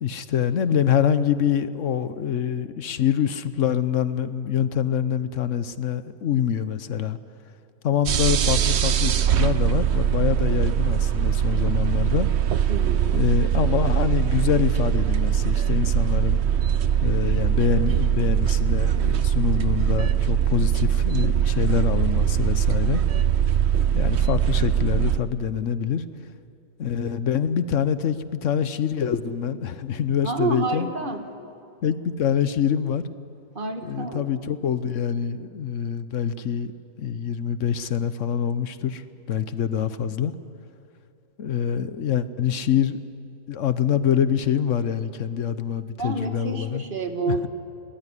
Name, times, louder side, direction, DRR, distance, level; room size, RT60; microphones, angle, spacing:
voice 1, 0.0-7.2 7.8-12.3 13.1-16.4 17.0-23.0 23.9-26.0 26.8-30.9 31.8-33.0 33.8-36.7 37.0-40.3 41.4-43.0 43.5-46.8 47.3-47.5, left 8 dB, 55° left, 13 dB, 1.0 m, -25 dB
sound 1, 8.1-25.2, right 9 dB, 55° right, 0.7 m, -22 dB
voice 2, 12.7-13.1 30.2-31.2 33.6-34.2 46.0-47.5, right 3 dB, 30° right, 6 dB, 1.7 m, -29 dB
22.0 x 19.0 x 9.9 m, 2.6 s
omnidirectional pair, 1.9 m